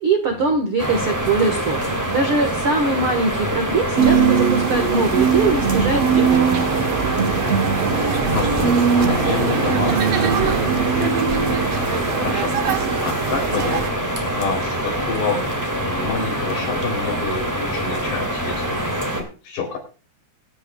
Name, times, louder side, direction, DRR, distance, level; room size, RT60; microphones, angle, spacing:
voice 1, 0.0-6.6, right 3 dB, 60° right, 4 dB, 1.4 m, -22 dB
sound 1, 0.8-19.2, right 1 dB, 10° right, 1.1 m, -25 dB
sound 2, 4.0-13.9, right 7 dB, 80° right, 1.4 m, -21 dB
voice 2, 7.6-12.6 13.0-13.9 14.3-15.5 15.7-19.8, left 5 dB, 75° left, 3 dB, 5.5 m, -29 dB
22.0 x 10.0 x 2.3 m, 0.35 s
omnidirectional pair, 4.8 m